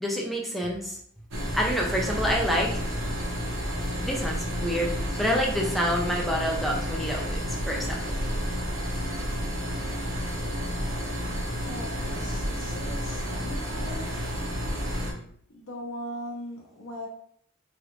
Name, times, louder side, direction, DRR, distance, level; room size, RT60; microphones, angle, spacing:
voice 1, 0.0-1.0 1.5-2.8 4.0-4.9 5.2-8.2, equal, ahead, -1 dB, 0.4 m, -27 dB
sound 1, 1.3-15.1, equal, 80° right, 0.8 m, -31 dB
voice 2, 11.6-14.3 15.5-17.1, equal, 80° left, 0 dB, 0.9 m, -39 dB
3.3 x 2.4 x 3.0 m, 0.64 s
head